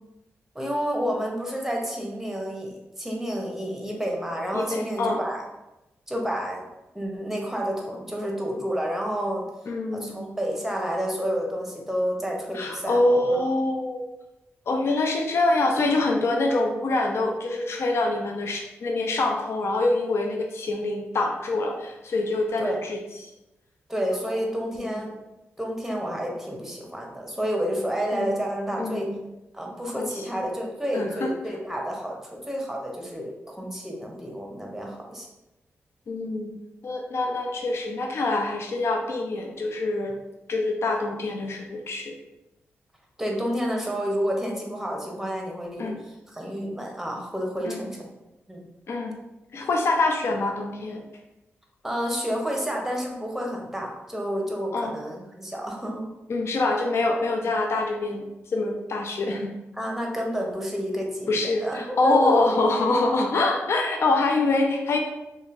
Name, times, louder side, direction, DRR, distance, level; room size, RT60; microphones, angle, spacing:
voice 1, 0.5-5.4 6.1-6.6 6.9-9.4 9.9-13.4 22.6-22.8 23.9-25.2 25.6-29.1 29.5-35.3 43.2-48.1 48.5-48.6 51.8-56.1 59.7-62.7, equal, 5° right, 0 dB, 0.7 m, -30 dB
voice 2, 4.5-5.2 9.7-10.2 12.5-14.1 14.7-23.3 24.8-25.0 28.1-28.4 28.8-29.2 30.0-30.2 30.9-31.3 36.1-36.6 36.8-40.1 40.5-42.1 45.8-46.0 47.6-47.8 48.9-49.2 49.5-51.0 54.7-55.0 56.3-59.5 61.3-65.0, left 2 dB, 60° left, 2 dB, 0.4 m, -25 dB
3.0 x 2.5 x 2.5 m, 0.96 s
cardioid pair, 60°, 5 cm